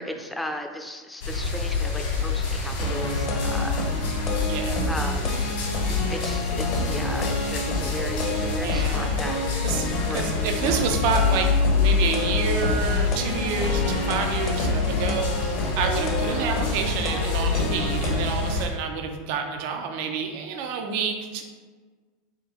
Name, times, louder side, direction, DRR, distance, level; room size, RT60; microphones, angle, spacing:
voice 1, 0.0-3.8 4.9-5.4 6.1-9.4 10.1-10.2, left 1 dB, 5° left, 4 dB, 0.5 m, -35 dB
sound 1, 1.2-18.7, left 4 dB, 70° left, 1.3 m, -27 dB
sound 2, 2.8-18.5, left 2 dB, 45° left, 0.7 m, -29 dB
voice 2, 4.5-4.8 8.6-9.3 9.6-21.4, right 5 dB, 60° right, 4 dB, 0.5 m, -29 dB
3.6 x 3.4 x 3.0 m, 1.4 s
hypercardioid pair, 90°, 0 cm